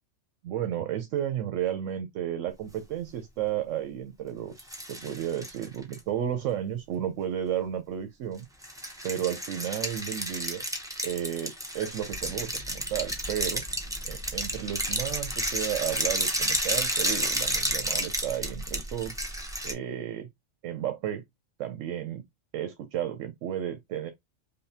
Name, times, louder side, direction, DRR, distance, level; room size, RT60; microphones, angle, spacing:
voice 1, 0.4-8.5 9.0-10.6 11.0-13.6 14.1-19.1 19.6-20.3 20.6-21.2 21.6-22.2 22.5-24.1, right 10 dB, 85° right, 1.0 m, -33 dB
sound 1, 4.6-6.0 8.6-19.7, right 1 dB, 5° right, 0.3 m, -31 dB
sound 2, 12.1-18.2, equal, 35° right, 1.2 m, -49 dB
5.2 x 2.1 x 2.7 m
omnidirectional pair, 1.3 m